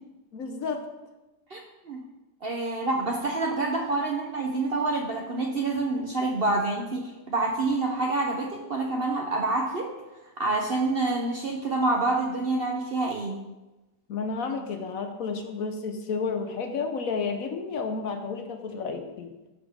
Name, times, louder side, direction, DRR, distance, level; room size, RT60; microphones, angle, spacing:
voice 1, 0.3-0.9 14.1-19.3, left 4 dB, 60° left, 5 dB, 1.2 m, -31 dB
voice 2, 1.5-2.0 2.4-9.9 10.2-13.4, right 2 dB, 50° right, 2 dB, 0.8 m, -27 dB
13.0 x 5.9 x 3.6 m, 1.1 s
omnidirectional pair, 1.7 m